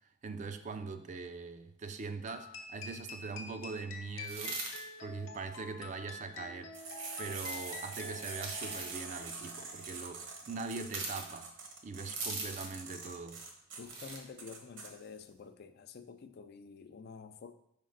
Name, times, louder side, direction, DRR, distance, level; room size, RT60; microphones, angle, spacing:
voice 1, 0.2-4.6 5.0-6.7 7.2-11.5 11.8-13.4, right 4 dB, 40° right, 0.4 m, -42 dB
sound 1, 2.3-9.1, left 4 dB, 75° left, 0.8 m, -47 dB
sound 2, 4.2-4.8 7.3-7.8 8.3-9.0 10.9-11.3 12.2-12.8 13.8-14.2, right 3 dB, 85° right, 1.5 m, -40 dB
sound 3, 6.7-14.9, right 4 dB, 70° right, 1.0 m, -45 dB
voice 2, 13.8-17.5, left 5 dB, 55° left, 0.4 m, -49 dB
5.2 x 5.1 x 3.9 m
head